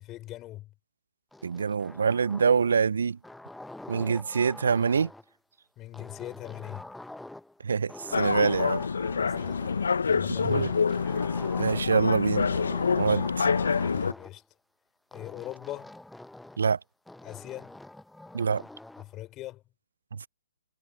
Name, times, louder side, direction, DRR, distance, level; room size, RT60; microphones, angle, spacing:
voice 1, 0.0-0.7 5.8-6.8 9.2-9.7 10.1-10.8 13.9-14.4 15.1-16.0 17.2-17.8 19.0-19.6, left 15 dB, 20° left, 5.3 m, -41 dB
sound 1, 1.3-2.9 3.2-5.3 5.9-7.6 7.9-9.9 10.4-12.0 12.3-14.3 15.1-16.7 17.1-19.1, left 1 dB, 5° left, 0.8 m, -45 dB
voice 2, 1.4-3.2 3.9-5.1 7.6-8.8 10.4-10.7 11.6-12.5 13.0-13.5 16.6-16.8 18.3-18.6 20.1-20.3, right 6 dB, 65° right, 0.5 m, -25 dB
sound 2, 8.1-14.1, left 5 dB, 70° left, 0.9 m, -27 dB
figure-of-eight pair, 135°, 0 cm